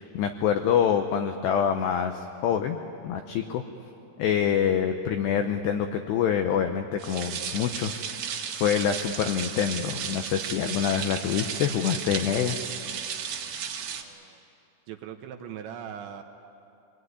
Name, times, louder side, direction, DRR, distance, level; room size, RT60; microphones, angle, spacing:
voice 1, 0.0-2.8 3.0-3.6 4.2-12.6, left 8 dB, 85° left, 6 dB, 2.4 m, -26 dB
sound 1, 7.0-14.0, right 7 dB, 60° right, 2.9 m, -34 dB
voice 2, 13.9-14.4 14.9-16.2, right 9 dB, 80° right, 5 dB, 2.8 m, -40 dB
25.5 x 20.0 x 9.7 m, 2.7 s
omnidirectional pair, 6.0 m